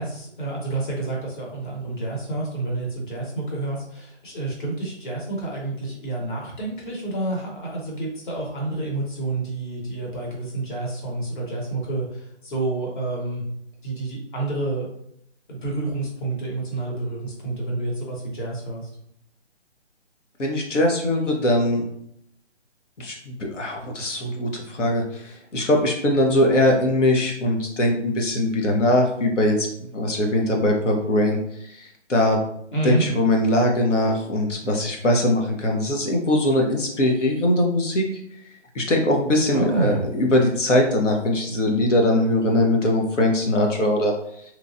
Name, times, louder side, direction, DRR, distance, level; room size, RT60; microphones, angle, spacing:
voice 1, 0.0-13.4 13.8-14.9 15.5-18.9 32.7-33.0 39.5-40.0, right 2 dB, 45° left, -2 dB, 1.2 m, -29 dB
voice 2, 20.4-21.8 23.0-29.7 29.9-32.4 32.8-38.1 38.7-44.4, left 1 dB, 85° left, 1 dB, 1.0 m, -21 dB
3.0 x 2.4 x 2.6 m, 0.74 s
hypercardioid pair, 165°, 36 cm